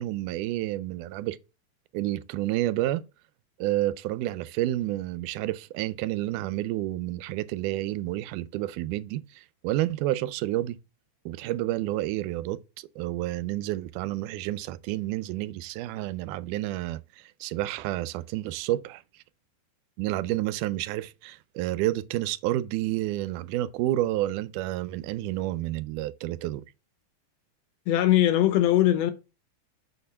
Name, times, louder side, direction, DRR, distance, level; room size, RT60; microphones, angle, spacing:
voice 1, 0.0-1.4 1.9-3.0 3.6-10.8 11.3-19.0 20.0-26.7, right 15 dB, 85° right, 2.0 m, -30 dB
voice 2, 27.9-29.1, left 13 dB, 75° left, 1.7 m, -21 dB
6.8 x 4.5 x 5.4 m
omnidirectional pair, 3.6 m